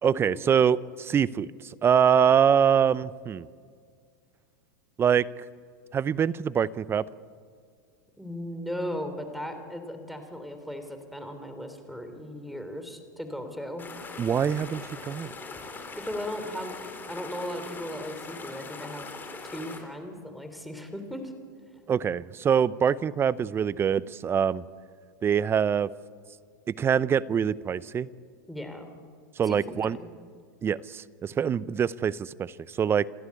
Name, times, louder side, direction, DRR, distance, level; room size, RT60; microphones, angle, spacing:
voice 1, 0.0-3.5 5.0-5.3 5.9-7.0 14.2-15.3 21.9-24.6 25.2-25.9 26.8-28.1 29.4-30.0 30.6-33.1, right 8 dB, 25° right, 20 dB, 0.6 m, -24 dB
voice 2, 8.2-13.9 15.9-16.8 17.1-19.1 19.4-21.3 28.5-28.9 29.4-30.1, equal, ahead, 7 dB, 3.3 m, -37 dB
sound 1, 13.8-19.8, left 4 dB, 20° left, 3.9 m, -41 dB
29.0 x 13.0 x 9.6 m, 2.1 s
hypercardioid pair, 115°, 10 cm